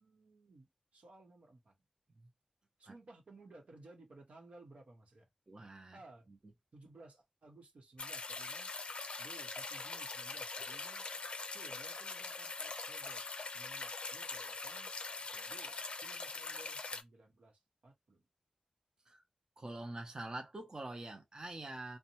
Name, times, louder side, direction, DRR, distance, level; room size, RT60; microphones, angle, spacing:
voice 1, 0.0-1.8 2.8-5.3 5.9-6.3 6.7-8.7 9.2-11.1 11.5-14.9 15.3-18.2, right 2 dB, 85° right, 0.9 m, -58 dB
voice 2, 5.5-6.0 19.1-19.2 19.6-22.0, right 2 dB, 35° right, 0.6 m, -45 dB
sound 1, 8.0-17.0, left 3 dB, 60° left, 0.4 m, -43 dB
sound 2, 8.9-16.1, left 2 dB, 10° left, 0.5 m, -60 dB
2.6 x 2.1 x 2.9 m
wide cardioid pair, 85°, 2 cm